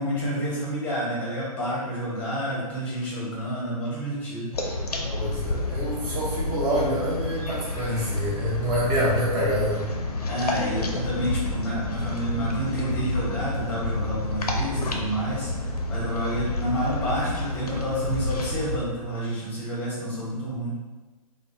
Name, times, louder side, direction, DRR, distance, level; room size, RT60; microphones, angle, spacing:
voice 1, 0.0-4.5 7.7-7.9 8.2-8.4 10.2-20.8, equal, 10° left, -6 dB, 0.9 m, -29 dB
sound 1, 4.5-18.8, left 2 dB, 80° left, 0.5 m, -29 dB
voice 2, 5.1-9.8, equal, 30° right, -5 dB, 0.8 m, -27 dB
2.9 x 2.1 x 2.6 m, 1.2 s
figure-of-eight pair, 115°, 19 cm